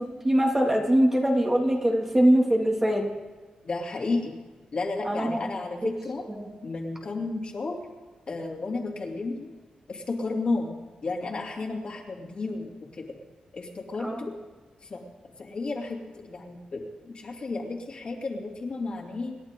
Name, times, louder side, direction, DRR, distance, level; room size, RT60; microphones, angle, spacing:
voice 1, 0.0-3.1 5.0-5.4 5.8-5.9 6.4-6.5 14.0-14.2, right 1 dB, 15° right, 0 dB, 2.3 m, -23 dB
voice 2, 3.6-4.4 4.7-6.2 6.6-7.8 8.3-9.5 9.9-10.7 11.0-13.0 13.5-14.3 14.8-15.0 15.4-19.4, left 3 dB, 45° left, 0 dB, 2.6 m, -32 dB
27.0 x 11.0 x 3.7 m, 1.3 s
wide cardioid pair, 125°, 2 cm